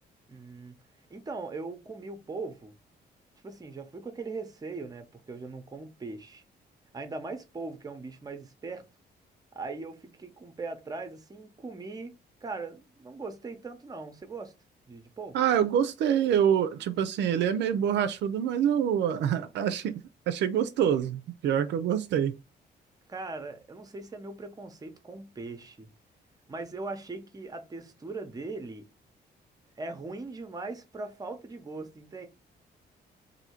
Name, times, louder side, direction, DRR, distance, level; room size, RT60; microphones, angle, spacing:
voice 1, 0.3-0.8 1.1-2.7 3.4-6.4 6.9-8.8 9.5-12.2 12.4-14.5 14.9-15.4 23.1-25.9 26.5-28.9 29.8-32.3, right 3 dB, 20° right, 0.7 m, -40 dB
voice 2, 15.3-19.9 20.3-22.3, right 9 dB, 80° right, 0.4 m, -26 dB
2.7 x 2.7 x 4.3 m
cardioid pair, 125°, 18 cm